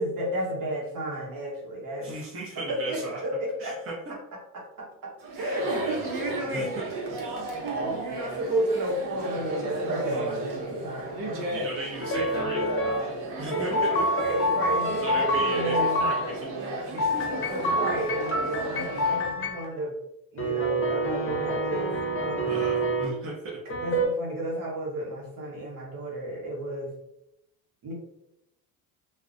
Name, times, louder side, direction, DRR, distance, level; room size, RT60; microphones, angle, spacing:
voice 1, 0.0-2.1 2.7-3.7 4.5-6.7 7.6-11.4 13.6-16.0 17.4-20.0 20.3-21.9 22.2-22.6 23.6-26.9 27.8-27.9, right 1 dB, 50° right, -2 dB, 1.0 m, -32 dB
voice 2, 2.0-3.2 3.6-3.9 5.8-6.1 6.5-6.9 10.1-10.5 11.5-12.7 13.4-14.0 15.0-17.3 22.5-23.6, right 3 dB, 30° right, -4 dB, 0.6 m, -36 dB
Chatter, 5.2-19.3, right 2 dB, 75° right, 0.8 m, -34 dB
sound 1, 12.0-13.0 13.5-16.2 17.0-19.6 20.4-23.0 23.7-24.1, equal, 30° left, 0.7 m, -27 dB
2.3 x 2.1 x 2.5 m, 0.83 s
supercardioid pair, 85°, 44 cm